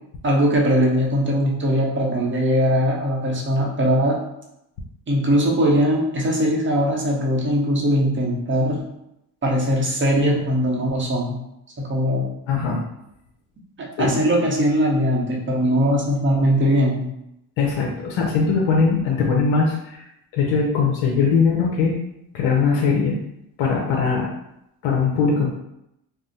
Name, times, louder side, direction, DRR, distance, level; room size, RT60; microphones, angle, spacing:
voice 1, 0.2-4.2 5.1-8.8 9.4-11.4 11.8-12.3 13.8-17.1, equal, 25° right, -2 dB, 0.7 m, -20 dB
voice 2, 12.5-12.8 14.0-14.1 17.6-20.0 20.3-21.9 22.3-23.2 23.6-24.3 24.8-25.5, left 5 dB, 65° left, -1 dB, 0.7 m, -20 dB
2.5 x 2.0 x 3.9 m, 0.83 s
cardioid pair, 120°, 48 cm